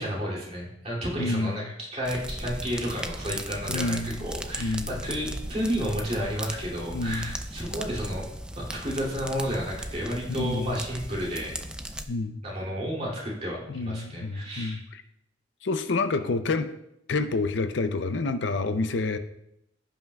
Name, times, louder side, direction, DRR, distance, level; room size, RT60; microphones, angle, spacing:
voice 1, 0.0-8.3 8.6-11.5 12.4-14.8, equal, 35° right, -4 dB, 2.7 m, -31 dB
voice 2, 1.2-1.7 3.7-4.3 4.6-4.9 6.9-7.3 10.3-10.8 12.1-12.4 13.7-15.0 15.6-16.7 17.1-19.2, left 3 dB, 70° left, 10 dB, 0.5 m, -28 dB
sound 1, 2.0-12.1, right 1 dB, 5° right, 0.4 m, -37 dB
16.0 x 5.6 x 2.3 m, 0.80 s
head